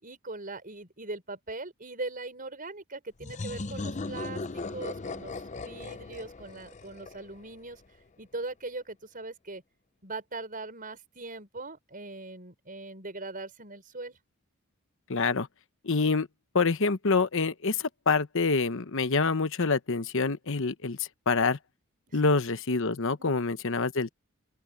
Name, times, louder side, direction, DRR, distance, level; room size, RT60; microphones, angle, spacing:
voice 1, 0.0-7.8 8.2-9.6 10.0-14.2 22.1-22.3 23.3-23.4, right 2 dB, 40° right, 6.1 m, -40 dB
sound 1, 3.2-7.8, left 3 dB, 35° left, 0.6 m, -38 dB
voice 2, 15.1-15.5 15.8-16.3 16.5-21.6 22.1-24.1, left 4 dB, 60° left, 1.0 m, -26 dB
open air
head